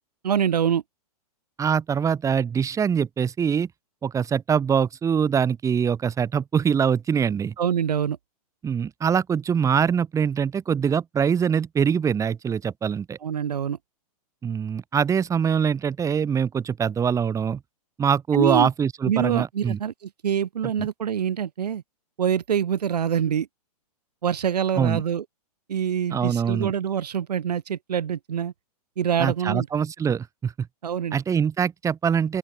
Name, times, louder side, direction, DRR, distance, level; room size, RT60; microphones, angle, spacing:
voice 1, 0.2-0.8 7.6-8.2 13.2-13.8 18.3-18.7 19.1-21.8 22.2-23.5 24.2-25.2 25.7-28.5 29.0-29.7 30.8-31.2, right 8 dB, 85° right, 2.7 m, -25 dB
voice 2, 1.6-3.7 4.0-7.5 8.6-13.2 14.4-17.6 18.0-19.8 20.8-20.9 24.8-25.0 26.1-26.7 29.2-30.7 31.1-32.4, right 7 dB, 15° right, 7.9 m, -23 dB
open air
hypercardioid pair, 140°, 20 cm